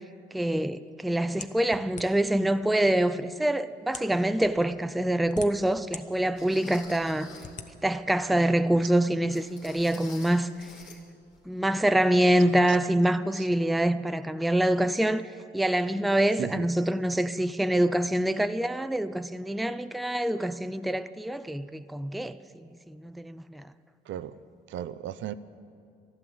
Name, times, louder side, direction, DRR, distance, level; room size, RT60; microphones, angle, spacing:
voice 1, 0.3-7.3 7.8-10.5 11.5-15.3 15.5-23.7, right 1 dB, ahead, 0.4 m, -25 dB
sound 1, 1.4-2.4 3.2-3.3 3.8-4.2 4.9-6.0 6.5-6.6 7.4-7.7, left 5 dB, 40° left, 0.9 m, -41 dB
sound 2, 4.4-4.5 5.2-5.3 6.4-7.6 9.3-11.0 11.3-11.5 11.9-12.0, left 5 dB, 85° left, 2.6 m, -48 dB
voice 2, 24.7-25.3, right 11 dB, 70° right, 0.6 m, -35 dB
12.5 x 11.5 x 7.8 m
cardioid pair, 90°, 20 cm